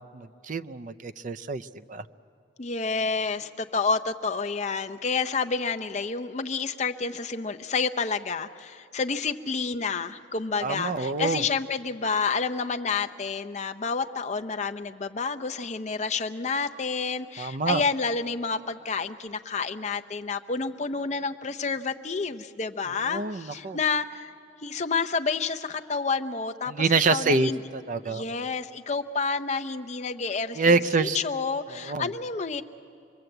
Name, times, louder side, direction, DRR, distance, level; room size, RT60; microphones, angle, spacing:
voice 1, 0.1-2.1 10.6-11.4 17.4-17.8 23.1-23.8 26.7-28.5 30.6-31.2 31.7-32.1, right 3 dB, 45° right, 11 dB, 0.5 m, -26 dB
voice 2, 2.6-24.3 24.6-27.6 28.0-32.6, left 4 dB, 40° left, 7 dB, 0.6 m, -29 dB
25.5 x 21.5 x 7.9 m, 2.5 s
head